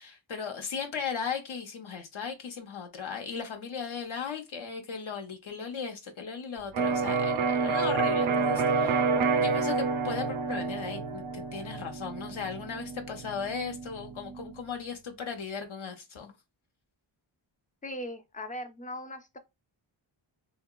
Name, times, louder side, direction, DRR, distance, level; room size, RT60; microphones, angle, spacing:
voice 1, 0.0-16.3, left 6 dB, 75° left, 0.8 m, -37 dB
Electric guitar, 6.7-14.5, right 4 dB, 75° right, 0.6 m, -29 dB
voice 2, 17.8-19.4, left 1 dB, 20° left, 0.3 m, -39 dB
2.8 x 2.1 x 2.2 m
wide cardioid pair, 75°, 49 cm